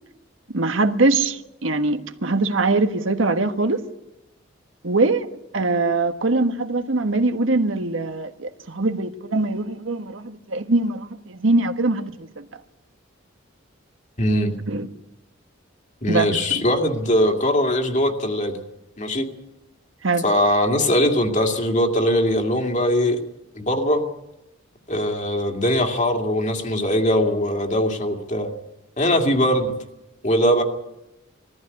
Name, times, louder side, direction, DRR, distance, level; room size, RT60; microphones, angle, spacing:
voice 1, 0.5-3.9 4.8-5.3 5.5-12.4 14.7-14.9 16.1-16.6 20.0-20.2, right 2 dB, 80° right, 1.4 m, -22 dB
voice 2, 14.2-14.5 16.0-18.6 19.0-19.3 20.2-23.2 23.6-24.0 24.9-28.5 29.0-29.7 30.2-30.6, equal, 40° left, 2.3 m, -21 dB
20.0 x 14.5 x 9.7 m
head